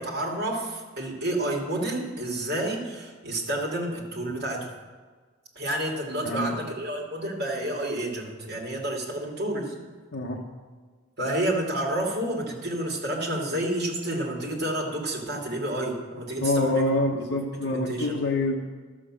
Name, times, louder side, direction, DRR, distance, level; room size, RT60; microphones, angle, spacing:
voice 1, 0.0-4.7 5.5-9.7 11.2-16.9 17.2-18.2, right 1 dB, 50° right, -1 dB, 2.5 m, -30 dB
voice 2, 6.2-6.6 10.1-10.4 16.4-18.7, left 2 dB, 60° left, -2 dB, 1.0 m, -26 dB
12.0 x 6.3 x 7.5 m, 1.5 s
head